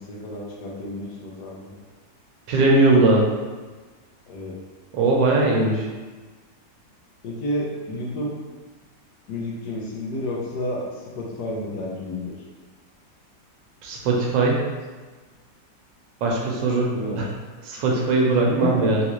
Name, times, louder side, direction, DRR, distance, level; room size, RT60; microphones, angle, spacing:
voice 1, 0.1-1.7 4.3-4.5 7.2-8.3 9.3-10.8 11.1-12.3 16.9-17.2 18.5-18.9, left 1 dB, 75° left, -3 dB, 1.2 m, -30 dB
voice 2, 2.5-3.2 4.9-5.9 13.8-14.6 16.2-17.3 17.7-19.0, right 3 dB, 80° right, -2 dB, 1.3 m, -20 dB
3.8 x 2.4 x 2.9 m, 1.3 s
omnidirectional pair, 2.0 m